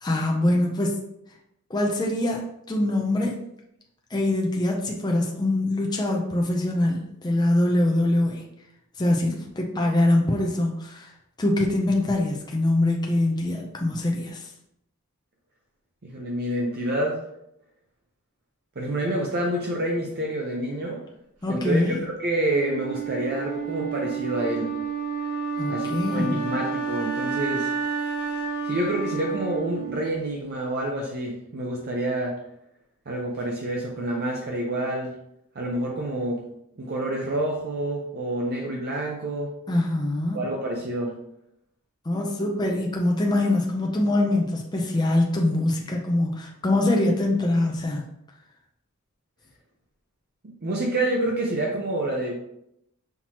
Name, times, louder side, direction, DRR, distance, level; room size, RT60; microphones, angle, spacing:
voice 1, 0.0-1.0 1.7-3.4 4.1-8.4 9.0-11.1 11.4-14.5 21.4-22.0 25.6-26.4 39.7-40.4 42.0-48.1, left 1 dB, 20° left, 0 dB, 0.5 m, -23 dB
voice 2, 16.0-17.2 18.8-21.0 21.5-24.7 25.7-27.7 28.6-32.3 33.1-35.1 35.5-36.4 36.8-39.5 40.3-41.1 50.4-52.3, right 1 dB, 45° right, -1 dB, 0.6 m, -28 dB
Wind instrument woodwind instrument, 22.5-30.5, right 5 dB, 90° right, 0.9 m, -30 dB
5.8 x 2.9 x 2.9 m, 0.78 s
head